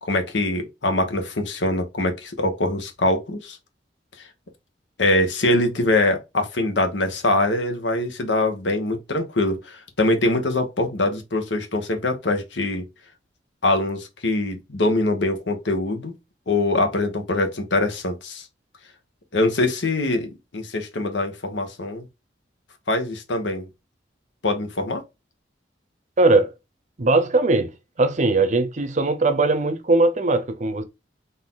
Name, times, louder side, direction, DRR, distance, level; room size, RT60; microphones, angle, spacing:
voice 1, 0.0-3.6 5.0-12.8 13.6-16.1 16.5-18.5 19.3-22.0 22.9-23.7 24.4-25.0, left 2 dB, 85° left, 1.0 m, -23 dB
voice 2, 26.2-26.5 27.0-27.7 28.0-30.8, right 2 dB, 40° right, 0.7 m, -19 dB
4.0 x 2.7 x 3.7 m
head